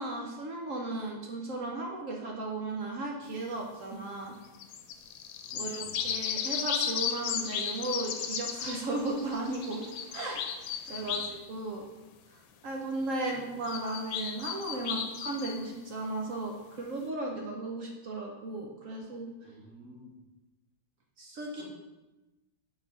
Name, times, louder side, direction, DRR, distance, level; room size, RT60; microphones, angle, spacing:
voice 1, 0.0-4.3 5.5-10.4 10.9-11.8 12.3-19.3 21.2-21.6, right 2 dB, 70° right, 0 dB, 0.7 m, -36 dB
sound 1, 4.6-8.7 9.9-11.4 13.6-15.6, left 8 dB, 85° left, 1.4 m, -34 dB
voice 2, 5.5-6.0 10.9-11.2 13.3-13.4 19.4-20.1, equal, 45° right, -9 dB, 2.7 m, -52 dB
Bird vocalization bird call bird song, 6.2-11.2, left 2 dB, 60° left, 0.7 m, -48 dB
5.7 x 4.5 x 3.9 m, 1.1 s
omnidirectional pair, 2.1 m